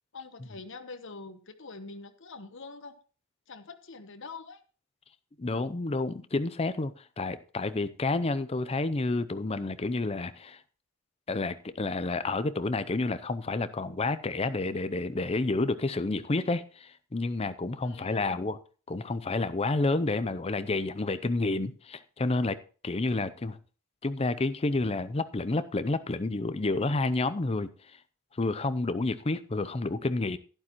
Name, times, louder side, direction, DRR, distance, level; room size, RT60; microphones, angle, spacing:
voice 1, 0.1-2.9 3.5-4.6 17.8-18.4, left 3 dB, 55° left, 1.0 m, -45 dB
voice 2, 5.4-10.6 11.3-18.6 18.9-22.6 22.8-23.6 24.0-27.7 28.4-30.4, left 2 dB, 25° left, 0.5 m, -29 dB
11.5 x 11.0 x 3.0 m
head